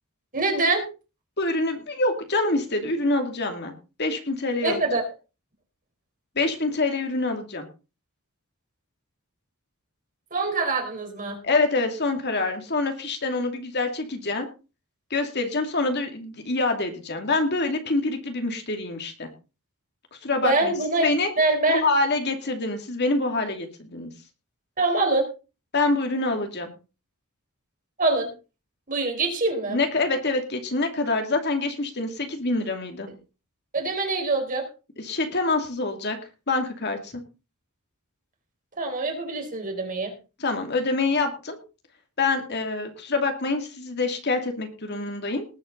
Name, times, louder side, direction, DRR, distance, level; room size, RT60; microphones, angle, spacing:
voice 1, 0.3-0.9 4.6-5.0 10.3-11.4 20.4-21.1 21.4-21.8 24.8-25.3 28.0-28.3 28.9-29.8 33.7-34.6 38.8-40.1, right 2 dB, 40° right, 3 dB, 4.1 m, -24 dB
voice 2, 1.4-3.7 4.0-4.8 6.4-7.7 11.4-14.5 15.1-19.3 20.2-20.7 21.0-21.3 21.7-24.1 25.7-26.7 29.7-33.1 35.0-36.2 36.5-37.2 40.4-41.6 42.2-45.4, left 3 dB, 50° left, 5 dB, 2.5 m, -26 dB
19.5 x 8.6 x 3.9 m, 0.32 s
head